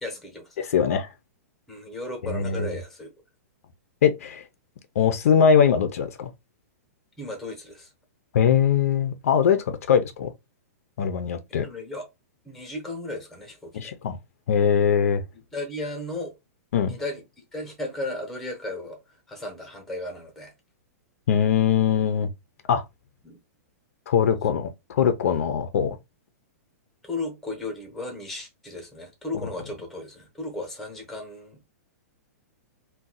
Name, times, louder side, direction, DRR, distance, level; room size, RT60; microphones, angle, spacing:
voice 1, 0.0-0.7 1.7-3.1 7.2-7.9 11.5-12.0 12.4-13.9 15.5-16.4 16.9-20.5 23.2-23.4 25.3-25.5 27.0-31.6, left 2 dB, 5° left, 0.8 m, -35 dB
voice 2, 0.6-1.1 2.2-2.7 4.0-4.4 5.0-6.3 8.3-10.3 11.0-11.7 13.7-14.2 14.5-15.2 16.7-17.0 21.3-22.3 22.7-22.8 24.1-26.0, left 7 dB, 60° left, 0.5 m, -21 dB
2.5 x 2.2 x 4.0 m
hypercardioid pair, 170°, 9 cm